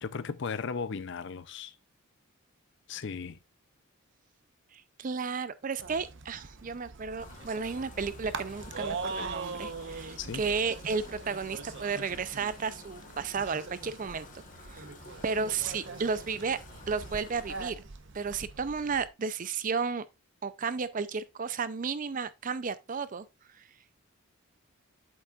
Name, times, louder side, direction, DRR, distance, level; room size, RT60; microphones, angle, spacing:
voice 1, 0.0-1.7 2.9-3.4 10.2-10.4, left 5 dB, 55° left, 0.5 m, -36 dB
voice 2, 4.7-14.4 14.7-14.9 15.2-16.6 16.9-17.8 18.1-20.1 20.4-23.3 23.6-23.7, right 5 dB, 35° right, 0.4 m, -33 dB
sound 1, 5.8-19.1, right 4 dB, 55° right, 0.9 m, -42 dB
sound 2, 7.2-17.7, left 3 dB, 35° left, 1.2 m, -51 dB
8.4 x 7.2 x 2.4 m
head